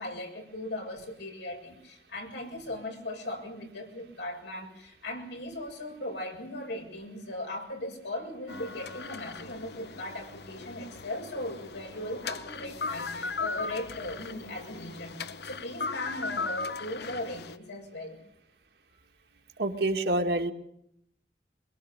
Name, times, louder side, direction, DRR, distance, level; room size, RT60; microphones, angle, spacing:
voice 1, 0.0-18.2, left 1 dB, 90° left, 2 dB, 7.2 m, -38 dB
sound 1, 8.5-17.6, left 4 dB, 70° left, 0.9 m, -38 dB
voice 2, 19.6-20.5, right 1 dB, 70° right, 3 dB, 2.3 m, -27 dB
23.5 x 22.5 x 6.9 m, 0.74 s
head